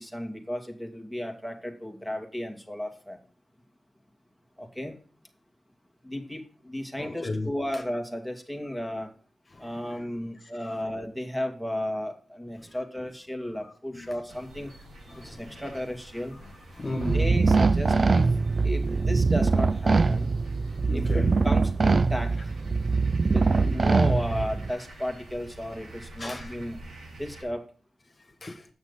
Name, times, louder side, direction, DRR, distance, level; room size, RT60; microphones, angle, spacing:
voice 1, 0.0-3.2 4.6-4.9 6.0-9.1 9.6-14.7 15.2-16.4 17.1-18.3 18.6-20.4 20.9-22.3 23.3-23.4 23.7-26.8 27.1-27.6, left 1 dB, 5° right, 2.1 m, -34 dB
voice 2, 7.0-7.5 9.5-10.1 10.6-10.7 12.6-12.8 13.9-14.2 15.1-15.7 16.4-17.3 20.9-21.3 23.6-23.9 26.2-26.5 28.2-28.7, left 2 dB, 40° left, 1.6 m, -35 dB
sound 1, 14.3-27.4, right 1 dB, 80° right, 5.4 m, -48 dB
sound 2, 17.0-24.7, right 4 dB, 45° right, 0.4 m, -23 dB
8.1 x 6.2 x 5.4 m
cardioid pair, 70°, 0 cm